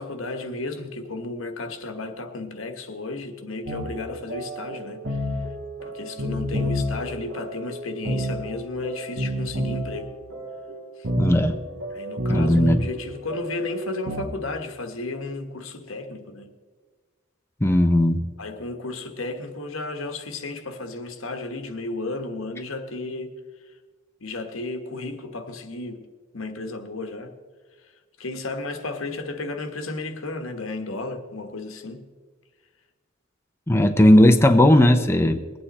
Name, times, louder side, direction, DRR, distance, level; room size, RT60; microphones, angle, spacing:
voice 1, 0.0-5.3 5.8-10.1 11.0-11.1 11.9-16.5 18.4-23.4 24.2-26.1 26.3-27.3 27.8-27.9 28.2-32.1, left 2 dB, 80° left, 1.3 m, -33 dB
sound 1, 3.7-14.2, equal, 70° right, 1.6 m, -30 dB
voice 2, 11.2-11.6 12.3-12.8 17.6-18.3 33.7-35.4, left 1 dB, 10° left, 0.6 m, -17 dB
21.5 x 8.9 x 4.2 m
head